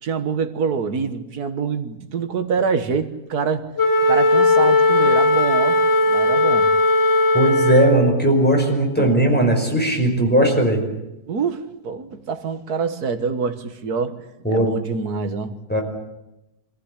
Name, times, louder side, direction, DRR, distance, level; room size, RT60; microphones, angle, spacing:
voice 1, 0.0-3.7 4.0-5.8 6.1-6.7 9.0-9.2 11.3-14.2 14.5-15.6, right 5 dB, 70° right, 10 dB, 2.0 m, -25 dB
Wind instrument woodwind instrument, 3.8-8.1, left 2 dB, 45° left, 2.1 m, -17 dB
voice 2, 7.3-10.8 14.4-14.7 15.7-15.8, right 1 dB, 5° left, 1 dB, 5.3 m, -18 dB
25.5 x 15.0 x 9.9 m, 0.92 s
omnidirectional pair, 1.7 m